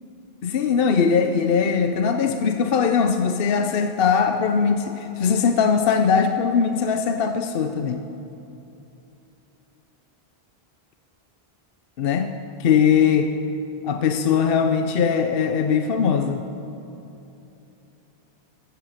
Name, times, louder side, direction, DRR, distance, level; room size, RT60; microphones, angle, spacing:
voice 1, 0.4-8.0 12.0-12.3 12.6-13.3 13.8-16.4, left 6 dB, 65° left, 6 dB, 0.9 m, -20 dB
15.5 x 13.5 x 6.6 m, 2.9 s
omnidirectional pair, 1.0 m